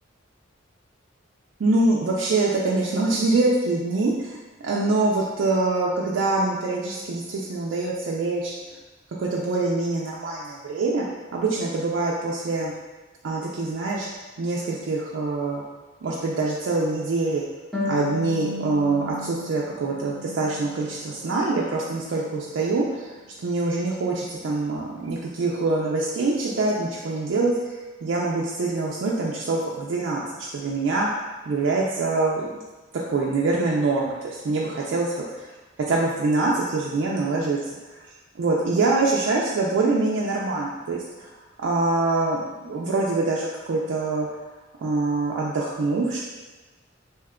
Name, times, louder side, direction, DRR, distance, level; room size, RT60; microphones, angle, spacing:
voice 1, 1.6-4.4 4.7-8.5 9.2-11.0 11.3-12.7 13.2-14.1 14.4-15.6 16.0-17.4 17.9-23.1 23.4-27.5 28.0-31.1 31.5-32.5 33.1-35.5 35.9-37.6 38.4-41.3 41.6-44.3 44.8-46.2, right 3 dB, 75° right, -4 dB, 0.4 m, -24 dB
Harp, 17.7-21.1 21.5-22.5, left 2 dB, 5° left, 0.6 m, -34 dB
2.8 x 2.2 x 3.5 m, 1.2 s
head